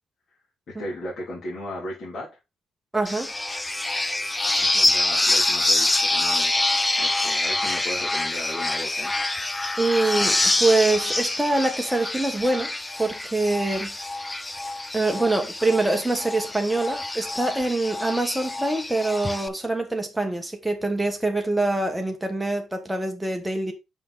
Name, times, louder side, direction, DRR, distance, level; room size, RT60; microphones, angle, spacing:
voice 1, 0.8-2.3 4.6-6.5 7.0-9.1, left 1 dB, 55° left, 3.1 m, -35 dB
voice 2, 2.9-3.3 9.8-12.7 13.0-13.9 14.9-23.7, right 2 dB, 5° right, 1.2 m, -24 dB
sound 1, 3.1-19.5, left 2 dB, 15° left, 0.5 m, -26 dB
5.2 x 5.1 x 4.0 m
cardioid pair, 90°, 0 cm